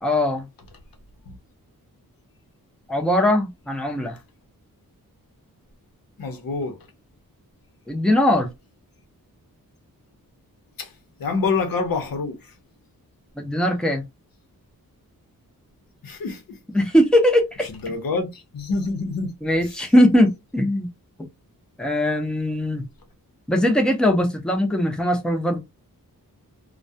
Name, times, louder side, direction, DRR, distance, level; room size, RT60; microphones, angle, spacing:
voice 1, 0.0-0.5 2.9-4.2 7.9-8.5 13.4-14.0 16.7-17.7 19.4-20.9 21.8-22.8 23.5-25.6, left 1 dB, ahead, 0.5 m, -20 dB
voice 2, 6.2-6.8 10.8-10.9 11.2-12.5 16.0-16.6 17.8-19.3, left 4 dB, 70° left, 0.8 m, -26 dB
2.2 x 2.1 x 2.6 m
wide cardioid pair, 130°, 36 cm